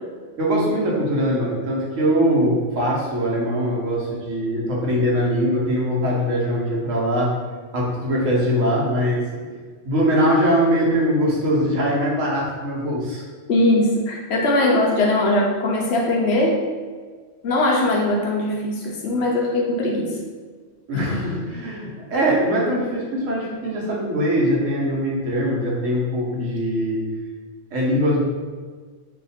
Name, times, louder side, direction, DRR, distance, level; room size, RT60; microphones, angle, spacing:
voice 1, 0.4-7.3 7.7-9.2 9.8-13.2 20.9-27.0 27.7-28.2, equal, 85° right, -4 dB, 1.3 m, -22 dB
voice 2, 13.5-16.6 17.4-20.1 20.9-21.1, left 1 dB, 65° left, -2 dB, 0.8 m, -20 dB
2.8 x 2.5 x 4.1 m, 1.5 s
omnidirectional pair, 1.3 m